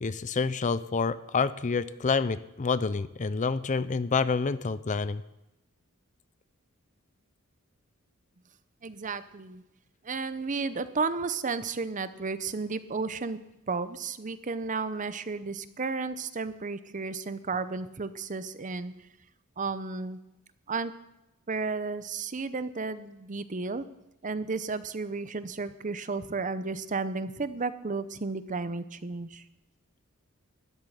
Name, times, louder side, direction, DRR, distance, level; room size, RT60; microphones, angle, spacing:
voice 1, 0.0-5.2, left 4 dB, 35° left, 15 dB, 0.5 m, -28 dB
voice 2, 8.8-9.6 10.0-13.4 13.7-18.9 19.6-20.2 20.7-20.9 21.5-23.8 24.2-29.4, right 4 dB, 35° right, 13 dB, 0.7 m, -33 dB
13.0 x 7.5 x 9.9 m, 0.91 s
head